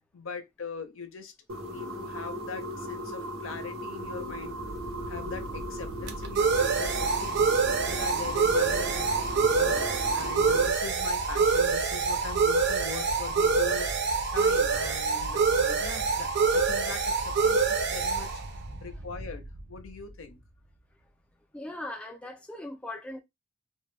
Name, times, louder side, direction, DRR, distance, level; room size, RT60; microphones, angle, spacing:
voice 1, 0.1-1.3 1.6-4.6 5.1-13.9 14.3-18.3 18.8-19.4 19.7-20.4, left 5 dB, 70° left, 0.5 m, -41 dB
sound 1, 1.5-10.7, equal, 90° right, 0.7 m, -38 dB
sound 2, 4.4-19.9, right 4 dB, 55° right, 0.5 m, -26 dB
voice 2, 21.5-23.2, left 1 dB, 5° left, 0.3 m, -40 dB
2.1 x 2.1 x 3.1 m
head